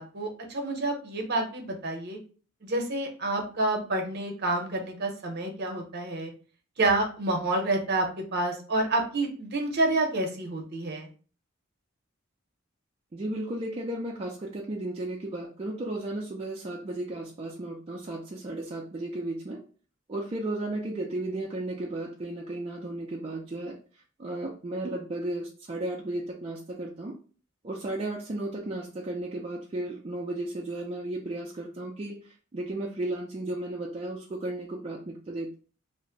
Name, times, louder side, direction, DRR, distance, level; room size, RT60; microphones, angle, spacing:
voice 1, 0.0-2.2 2.6-6.3 6.8-11.1, right 2 dB, 55° right, 3 dB, 0.7 m, -28 dB
voice 2, 13.1-19.6 20.1-23.8 24.2-27.2 27.6-35.5, right 1 dB, 30° right, -2 dB, 0.4 m, -34 dB
2.5 x 2.1 x 3.7 m, 0.40 s
head